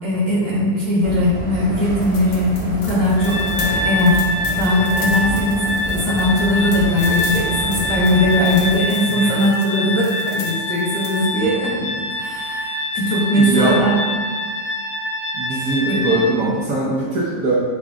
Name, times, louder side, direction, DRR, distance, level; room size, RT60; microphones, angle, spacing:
voice 1, 0.0-4.2 4.5-14.0 15.8-16.0, left 1 dB, 10° left, -8 dB, 0.9 m, -19 dB
sound 1, 1.0-8.8, right 1 dB, 45° right, 1.0 m, -29 dB
sound 2, 2.0-11.3, left 5 dB, 85° left, 1.3 m, -37 dB
sound 3, 3.2-16.2, left 2 dB, 65° left, 1.8 m, -25 dB
voice 2, 13.3-13.8 15.3-17.6, right 2 dB, 65° right, -7 dB, 1.2 m, -21 dB
5.9 x 2.3 x 3.5 m, 1.6 s
omnidirectional pair, 1.8 m